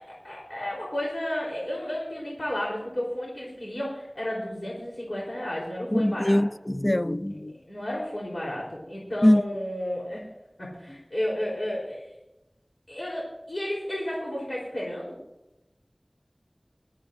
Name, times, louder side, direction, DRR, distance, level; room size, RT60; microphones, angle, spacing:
voice 1, 0.0-6.4 7.5-10.3 10.6-12.1 12.9-15.2, left 1 dB, 75° left, 4.0 m, -32 dB
voice 2, 5.9-6.5 6.7-7.5 9.2-9.4, left 1 dB, 35° left, 0.4 m, -21 dB
22.5 x 13.0 x 2.7 m
wide cardioid pair, 45°, 0 cm